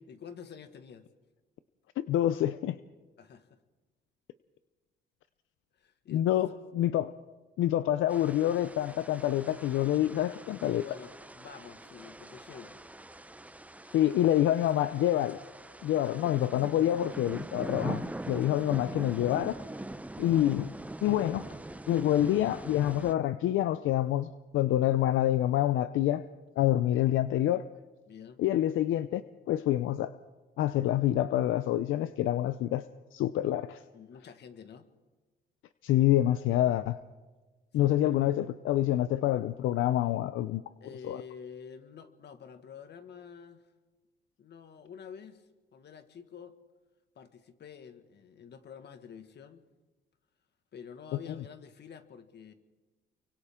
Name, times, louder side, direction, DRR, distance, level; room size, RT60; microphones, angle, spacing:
voice 1, 0.1-1.1 3.2-3.6 5.8-6.6 10.8-12.8 18.6-18.9 28.1-28.4 33.9-34.9 37.8-38.1 40.8-43.6 44.4-46.5 47.2-49.6 50.7-52.5, left 7 dB, 60° left, 8 dB, 1.8 m, -48 dB
voice 2, 2.0-2.8 6.1-7.1 7.6-10.9 13.9-15.4 15.8-19.6 20.2-20.7 21.0-21.5 21.9-26.2 26.6-27.7 28.4-29.2 29.5-30.1 30.6-33.8 35.8-37.0 37.7-40.6 41.0-41.2, left 13 dB, 80° left, 13 dB, 0.6 m, -27 dB
sound 1, 8.1-23.1, right 1 dB, 5° right, 0.7 m, -43 dB
29.5 x 24.0 x 3.7 m, 1.2 s
cardioid pair, 90°, 20 cm